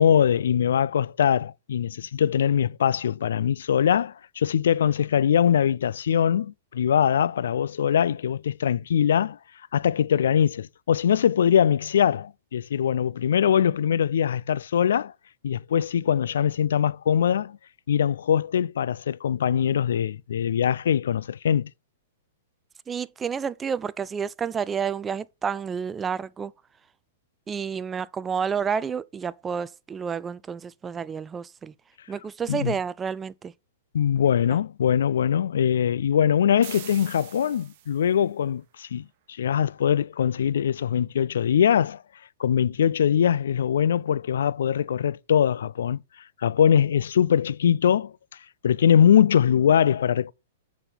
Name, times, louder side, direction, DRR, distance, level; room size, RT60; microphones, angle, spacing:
voice 1, 0.0-9.4 9.7-15.1 15.4-17.6 17.9-21.7 32.5-32.7 33.9-42.0 42.4-46.0 46.4-48.1 48.6-50.3, left 8 dB, 65° left, 0.4 m, -22 dB
voice 2, 22.9-26.5 27.5-31.7 32.1-33.5, right 6 dB, 15° right, 0.3 m, -30 dB
sound 1, 36.6-38.2, right 12 dB, 45° right, 1.0 m, -43 dB
8.6 x 4.2 x 5.6 m
figure-of-eight pair, 105°, 0 cm